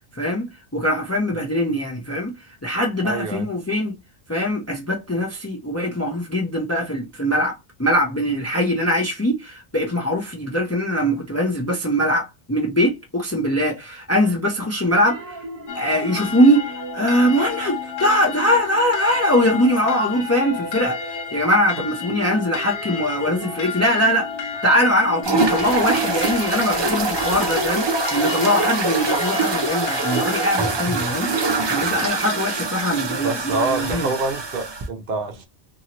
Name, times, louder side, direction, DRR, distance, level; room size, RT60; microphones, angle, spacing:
voice 1, 0.2-2.3 2.6-4.0 4.3-15.4 15.7-24.3 24.6-34.1, equal, 20° left, 0.4 m, -22 dB
voice 2, 3.0-3.5 33.2-35.5, right 3 dB, 60° right, 0.8 m, -26 dB
sound 1, 15.1-18.8 19.1-26.9, equal, 20° right, 0.9 m, -38 dB
sound 2, 15.7-30.5, left 7 dB, 85° left, 1.0 m, -32 dB
sound 3, 25.2-34.9, right 3 dB, 40° right, 0.4 m, -24 dB
2.8 x 2.7 x 2.9 m
omnidirectional pair, 1.1 m